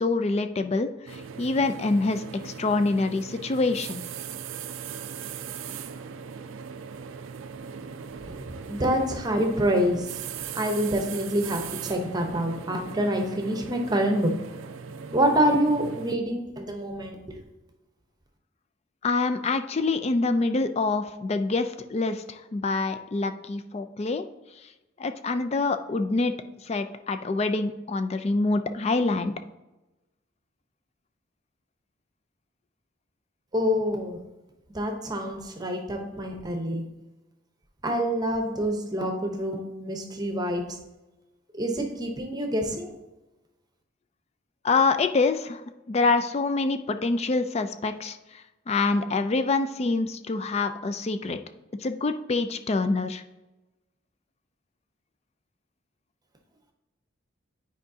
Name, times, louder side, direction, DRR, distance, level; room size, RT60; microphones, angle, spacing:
voice 1, 0.0-4.0 19.0-24.3 25.0-26.3 26.6-29.3 44.6-45.6 45.9-51.4 51.8-53.2, left 3 dB, 30° left, 9 dB, 0.4 m, -26 dB
sound 1, 1.1-16.2, right 7 dB, 85° right, 0.4 m, -39 dB
voice 2, 8.6-10.2 10.5-14.3 15.1-17.4 33.5-34.2 34.7-36.8 37.8-40.8 41.5-42.9, equal, 20° right, 2 dB, 0.8 m, -26 dB
9.2 x 4.7 x 2.7 m, 1.0 s
head